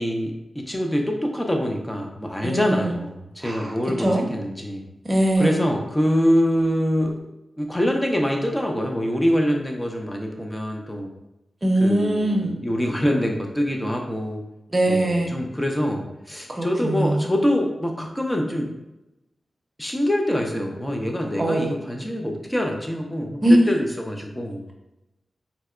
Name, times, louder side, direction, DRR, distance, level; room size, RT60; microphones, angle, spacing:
voice 1, 0.0-4.9 5.4-7.3 7.6-11.1 11.8-14.4 14.9-18.7 19.8-24.6, equal, 15° left, 2 dB, 0.6 m, -25 dB
voice 2, 2.4-3.0 3.4-4.2 5.0-5.6 11.6-12.6 14.7-15.3 16.5-17.3 21.4-21.7 23.4-23.6, right 1 dB, 35° right, 0 dB, 0.7 m, -21 dB
3.9 x 2.2 x 2.4 m, 0.91 s
cardioid pair, 50°, 0 cm